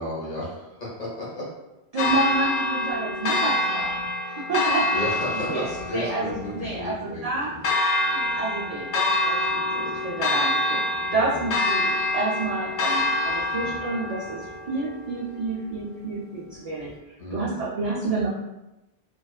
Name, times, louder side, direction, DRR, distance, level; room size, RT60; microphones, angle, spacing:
voice 1, 0.0-1.5 4.9-7.2 7.5-7.6 11.1-11.4 13.5-13.8 17.2-17.6, left 1 dB, 45° left, -6 dB, 0.9 m, -33 dB
voice 2, 1.9-3.9 4.2-5.0 5.5-5.7 5.9-7.5 8.0-10.8 11.1-16.9 17.3-18.3, right 3 dB, 55° right, -7 dB, 0.4 m, -29 dB
Church bell, 2.0-16.0, left 2 dB, 90° left, 0.9 m, -26 dB
2.5 x 2.3 x 2.3 m, 0.95 s
omnidirectional pair, 1.1 m